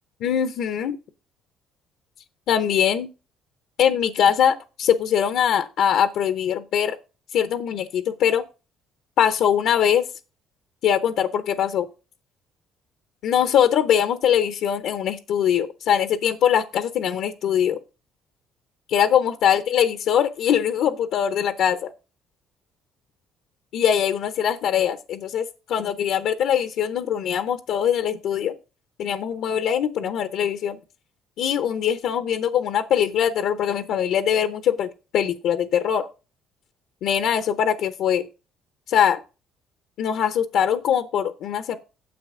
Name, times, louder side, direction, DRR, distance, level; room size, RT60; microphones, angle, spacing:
voice 1, 0.2-1.0 2.5-3.1 3.8-7.0 7.3-8.4 9.2-10.1 10.8-11.9 13.2-17.8 18.9-21.9 23.7-28.5 29.0-30.8 31.4-36.1 37.0-38.3 38.9-39.2 40.0-41.8, left 9 dB, 70° left, 11 dB, 0.7 m, -22 dB
9.6 x 7.2 x 3.7 m, 0.32 s
cardioid pair, 110°, 0 cm